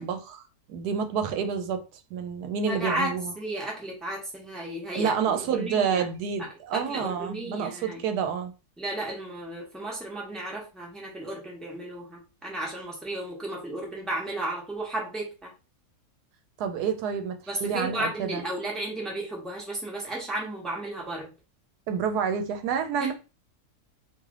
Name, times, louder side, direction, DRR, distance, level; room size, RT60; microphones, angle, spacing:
voice 1, 0.0-3.3 4.9-8.5 16.6-18.4 21.9-23.1, right 6 dB, 80° right, 1.1 m, -29 dB
voice 2, 2.7-3.1 3.4-6.0 6.7-8.0 8.8-15.5 17.5-21.3 23.0-23.1, right 1 dB, ahead, 0.9 m, -34 dB
3.2 x 2.8 x 3.6 m
omnidirectional pair, 1.7 m